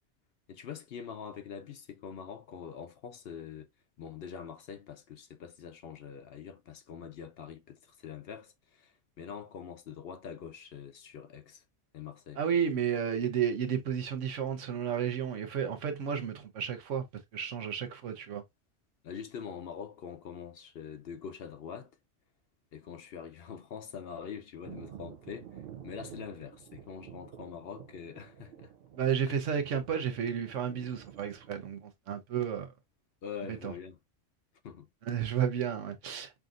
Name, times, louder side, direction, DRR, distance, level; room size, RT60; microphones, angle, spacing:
voice 1, 0.5-3.7 4.0-11.6 11.9-12.4 19.0-22.0 22.7-28.7 29.3-29.4 33.2-34.0 34.6-34.9, left 7 dB, 65° left, 0.7 m, -44 dB
voice 2, 12.4-17.0 17.3-18.4 29.0-32.7 33.6-33.7 35.0-36.3, right 8 dB, 80° right, 1.1 m, -32 dB
Thunder, 24.6-31.7, right 9 dB, 60° right, 0.8 m, -50 dB
6.0 x 2.6 x 2.4 m
omnidirectional pair, 1.3 m